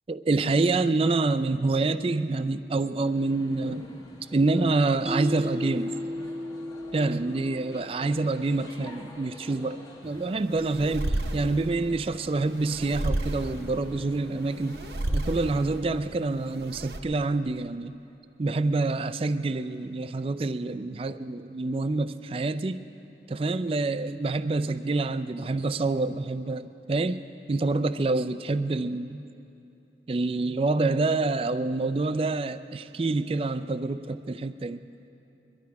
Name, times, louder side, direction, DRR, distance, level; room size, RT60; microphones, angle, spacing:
voice 1, 0.1-3.8 4.3-5.9 6.9-14.8 15.1-17.9 18.4-22.8 23.3-27.2 27.5-29.2 30.1-34.8, right 3 dB, 30° right, 12 dB, 0.4 m, -27 dB
sound 1, 3.0-15.8, left 1 dB, 20° left, 1.0 m, -49 dB
Mallet percussion, 5.1-8.3, left 1 dB, 5° right, 0.9 m, -35 dB
sound 2, 10.0-17.0, right 1 dB, 70° right, 1.0 m, -33 dB
22.5 x 11.5 x 4.7 m, 2.8 s
head